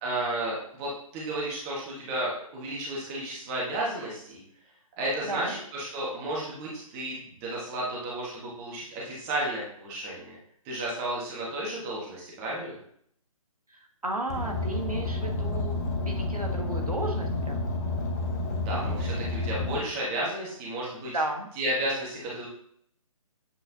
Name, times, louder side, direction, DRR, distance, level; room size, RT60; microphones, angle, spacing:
voice 1, 0.0-4.4 5.0-10.4 10.6-12.8 18.6-21.1 21.5-22.5, right 1 dB, 20° right, -4 dB, 1.6 m, -32 dB
voice 2, 5.3-5.6 13.7-15.8 16.0-17.7 21.1-21.5, right 2 dB, 85° right, 2 dB, 1.4 m, -33 dB
Car, 14.3-19.8, left 2 dB, 30° left, 0.9 m, -30 dB
8.4 x 4.0 x 2.8 m, 0.65 s
figure-of-eight pair, 145°, 18 cm